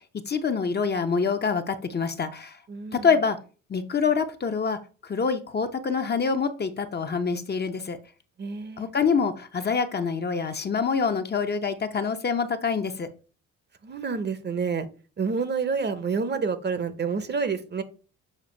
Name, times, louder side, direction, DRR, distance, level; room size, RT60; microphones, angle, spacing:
voice 1, 0.3-2.6 2.9-3.4 3.7-8.0 8.8-13.1, left 5 dB, 35° left, 7 dB, 0.7 m, -26 dB
voice 2, 2.7-3.1 8.4-8.9 13.8-14.9 15.2-17.8, right 5 dB, 35° right, 12 dB, 0.8 m, -28 dB
7.3 x 2.5 x 5.2 m, 0.36 s
cardioid pair, 90°, 30 cm